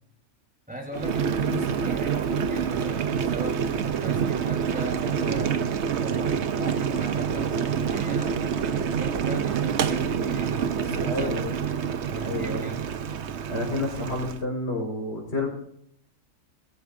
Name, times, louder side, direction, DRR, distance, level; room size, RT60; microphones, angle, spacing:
voice 1, 0.7-5.5 6.0-8.4 8.8-11.5 12.0-12.8, right 1 dB, 5° right, -1 dB, 3.9 m, -38 dB
Boiling, 0.9-14.4, right 7 dB, 60° right, 1.0 m, -27 dB
voice 2, 10.8-11.5 12.2-12.6 13.5-15.5, left 2 dB, 50° left, 0 dB, 5.0 m, -30 dB
21.5 x 15.0 x 2.7 m, 0.73 s
omnidirectional pair, 1.4 m